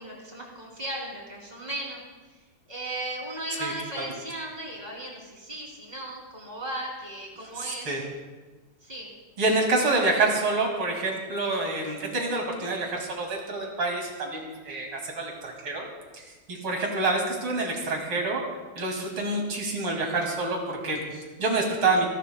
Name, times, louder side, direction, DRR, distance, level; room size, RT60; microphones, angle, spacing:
voice 1, 0.0-2.0 2.7-7.9 8.8-9.1, right 1 dB, 20° right, -2 dB, 3.1 m, -36 dB
voice 2, 7.6-8.1 9.4-15.8 16.1-18.4 18.8-22.1, right 2 dB, 90° right, 1 dB, 3.2 m, -27 dB
28.5 x 11.5 x 2.2 m, 1.3 s
omnidirectional pair, 2.3 m